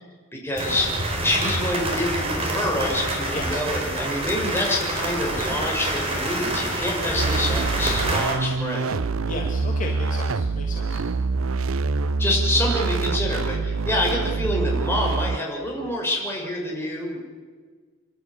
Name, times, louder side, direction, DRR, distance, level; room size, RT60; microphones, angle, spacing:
voice 1, 0.3-8.9 12.2-17.2, left 1 dB, 10° left, -2 dB, 6.2 m, -27 dB
sound 1, 0.6-8.3, right 1 dB, 30° right, 4.6 m, -27 dB
sound 2, 7.1-15.4, right 3 dB, 70° right, 0.6 m, -25 dB
voice 2, 9.3-11.0, left 2 dB, 40° left, 0 dB, 2.3 m, -34 dB
28.5 x 12.0 x 9.8 m, 1.5 s
head